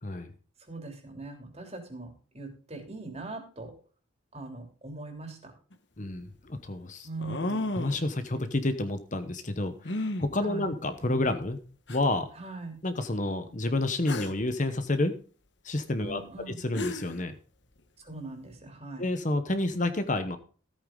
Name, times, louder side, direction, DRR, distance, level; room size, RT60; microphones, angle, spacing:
voice 1, 0.7-3.7 4.3-5.5 7.0-7.8 10.4-10.7 12.3-12.8 16.0-16.6 18.0-19.1, right 3 dB, 30° right, 4 dB, 3.1 m, -41 dB
sound 1, 5.7-5.8 7.2-8.1 9.8-10.3 11.2-11.3 11.9-12.0 14.1-14.4 16.4-16.5 16.7-17.2, left 2 dB, 60° left, 1.2 m, -32 dB
voice 2, 6.0-7.1 7.7-11.6 11.9-12.3 12.8-15.1 15.6-17.3 19.0-20.4, left 2 dB, 40° left, 9 dB, 1.0 m, -29 dB
14.0 x 8.8 x 3.8 m, 0.40 s
head